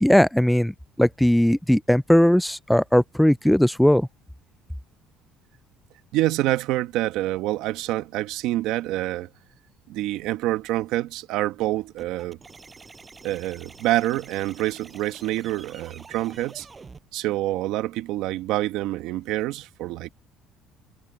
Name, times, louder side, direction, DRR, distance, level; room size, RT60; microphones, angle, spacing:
voice 1, 0.0-0.7 1.0-4.1, equal, ahead, 0.3 m, -18 dB
voice 2, 6.1-9.3 9.9-12.4 13.2-16.7 17.1-20.1, right 16 dB, 75° right, 1.3 m, -26 dB
sound 1, 12.0-17.0, right 4 dB, 25° right, 7.1 m, -47 dB
cardioid pair, 110°, 0 cm